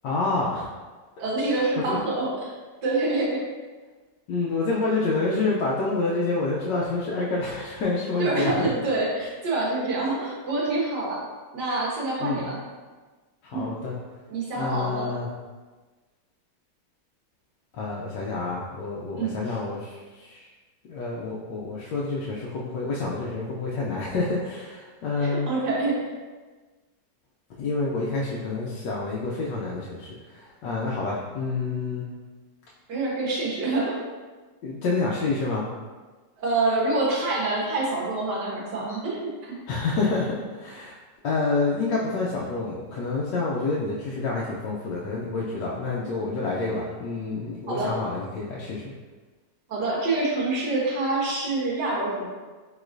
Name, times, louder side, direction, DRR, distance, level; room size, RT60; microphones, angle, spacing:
voice 1, 0.0-0.7 1.4-2.0 4.3-8.7 12.2-12.5 13.4-13.9 14.6-15.3 17.7-20.5 20.9-25.5 27.6-32.0 34.6-35.6 39.7-40.9 41.2-48.9, left 3 dB, 80° left, -5 dB, 1.2 m, -28 dB
voice 2, 1.2-2.5 2.8-3.4 8.2-11.2 11.5-12.6 13.5-13.7 14.3-15.1 19.2-19.6 25.2-26.0 32.9-34.0 36.4-39.6 47.7-47.9 49.7-52.3, right 2 dB, 70° right, -4 dB, 1.6 m, -26 dB
5.0 x 3.8 x 2.5 m, 1.3 s
omnidirectional pair, 1.9 m